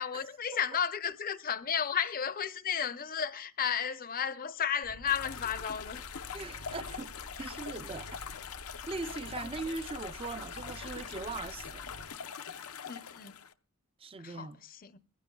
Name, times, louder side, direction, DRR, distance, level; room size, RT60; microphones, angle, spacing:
voice 1, 0.0-6.1 12.9-13.4 14.2-15.0, left 7 dB, 40° left, 0.7 m, -33 dB
sound 1, 4.8-12.0, equal, 85° right, 1.7 m, -49 dB
sound 2, 5.1-13.5, left 7 dB, 75° left, 0.7 m, -43 dB
voice 2, 6.3-7.1 7.4-8.2 8.9-11.9 14.0-14.6, right 3 dB, 25° right, 0.5 m, -40 dB
21.0 x 15.5 x 2.3 m
head